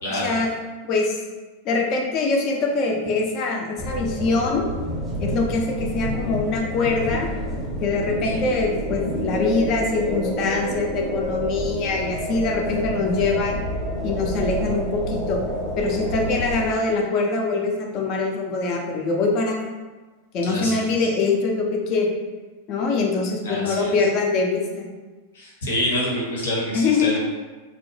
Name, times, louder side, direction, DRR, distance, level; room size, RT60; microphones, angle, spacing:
voice 1, 0.1-0.5 0.8-1.2 1.6-4.6 5.2-7.3 7.8-13.6 14.0-15.4 15.8-19.6 20.3-22.1 22.7-24.9 26.7-27.2, left 3 dB, 40° left, 0 dB, 0.5 m, -23 dB
sound 1, 3.8-16.7, equal, 5° right, 0.7 m, -28 dB
voice 2, 20.4-21.1 23.4-23.9 25.3-27.2, left 1 dB, 65° left, -4 dB, 0.8 m, -27 dB
2.8 x 2.0 x 3.1 m, 1.3 s
figure-of-eight pair, 90°, 0 cm